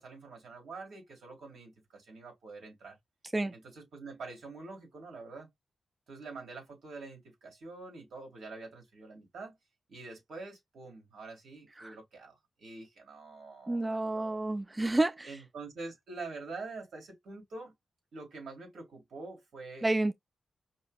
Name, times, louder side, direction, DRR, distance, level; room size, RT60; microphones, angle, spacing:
voice 1, 0.0-3.0 3.5-5.5 6.1-9.6 9.9-14.4 15.2-17.7 18.1-19.9, right 3 dB, 85° right, 2.2 m, -46 dB
voice 2, 13.7-15.4 19.8-20.1, right 2 dB, 20° right, 0.3 m, -30 dB
5.4 x 2.0 x 2.3 m
cardioid pair, 75°, 0 cm